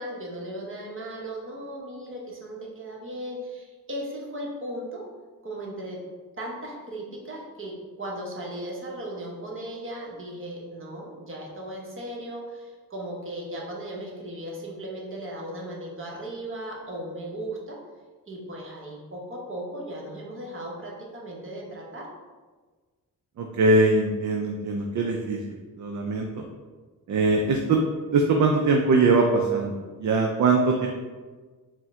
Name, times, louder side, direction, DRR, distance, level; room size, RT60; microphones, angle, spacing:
voice 1, 0.0-5.0 5.4-6.0 6.4-17.8 18.3-22.1, right 1 dB, 35° right, -3 dB, 1.0 m, -37 dB
voice 2, 23.4-25.4 25.8-26.5 27.1-27.8 28.1-30.9, right 3 dB, 55° right, 1 dB, 0.4 m, -22 dB
4.3 x 2.1 x 3.6 m, 1.4 s
cardioid pair, 80°, 36 cm